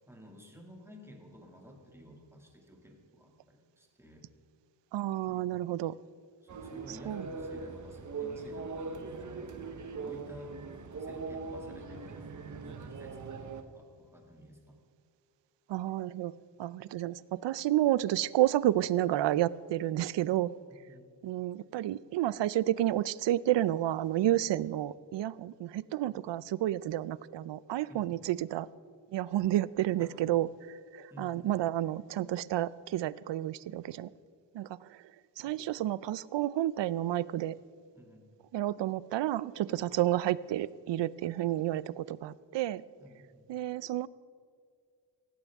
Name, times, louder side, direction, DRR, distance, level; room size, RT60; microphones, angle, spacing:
voice 1, 0.1-4.3 5.3-5.6 6.4-10.6 11.0-13.2 13.5-14.8 20.9-21.0 24.4-24.5 26.0-26.2 27.9-28.1 30.0-30.1 31.1-31.6 35.5-35.6 37.9-38.3 39.7-39.9 43.0-43.5, equal, 5° right, 1 dB, 2.1 m, -53 dB
voice 2, 4.9-6.0 7.1-7.3 15.7-16.3 16.6-20.5 21.2-28.7 29.1-34.1 34.5-35.0 35.4-37.6 38.5-42.8 43.5-44.1, right 13 dB, 70° right, 19 dB, 0.5 m, -30 dB
sound 1, 6.5-13.6, right 4 dB, 40° right, 1.1 m, -41 dB
17.5 x 16.5 x 3.6 m, 2.2 s
wide cardioid pair, 150°, 45 cm